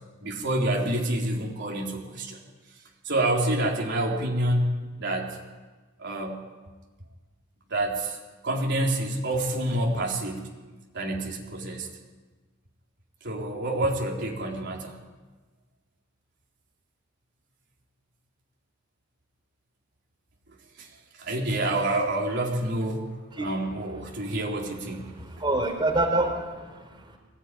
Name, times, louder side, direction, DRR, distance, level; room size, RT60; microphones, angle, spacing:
voice 1, 0.2-2.4 3.0-5.4 6.0-6.4 7.7-8.2 8.4-10.5 10.9-11.9 13.2-15.0 20.8-20.9 21.2-23.1 23.4-25.1, right 1 dB, 55° right, -1 dB, 3.9 m, -27 dB
voice 2, 25.1-27.2, right 2 dB, 25° right, 3 dB, 4.1 m, -27 dB
23.5 x 18.0 x 9.9 m, 1.3 s
head